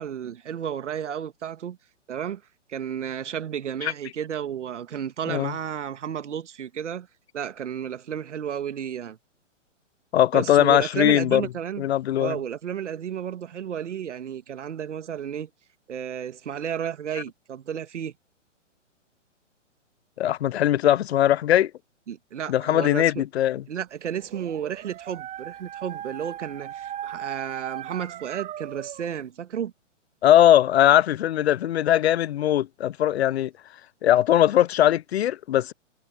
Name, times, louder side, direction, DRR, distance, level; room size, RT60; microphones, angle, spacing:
voice 1, 0.0-1.8 2.1-2.4 2.7-7.1 7.3-9.2 10.3-11.8 12.2-15.5 15.9-18.1 22.1-23.1 23.7-29.7, right 9 dB, 70° right, 1.9 m, -32 dB
voice 2, 10.1-11.4 11.8-12.4 20.2-21.7 22.5-23.6 30.2-33.5 34.0-35.7, left 12 dB, 55° left, 0.8 m, -20 dB
Dog, 24.1-29.2, right 11 dB, 20° right, 4.5 m, -38 dB
hypercardioid pair, 135°, 37 cm